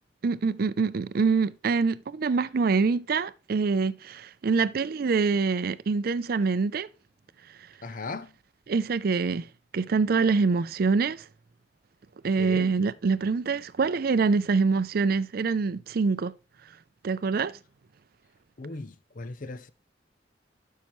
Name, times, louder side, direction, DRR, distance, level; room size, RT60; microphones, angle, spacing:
voice 1, 0.2-6.9 8.7-9.5 9.7-11.3 12.2-16.3 17.0-17.6, right 4 dB, 55° right, 0.4 m, -25 dB
voice 2, 7.8-8.3 12.4-12.7 18.6-19.7, left 3 dB, 50° left, 0.6 m, -37 dB
11.5 x 5.6 x 3.1 m
head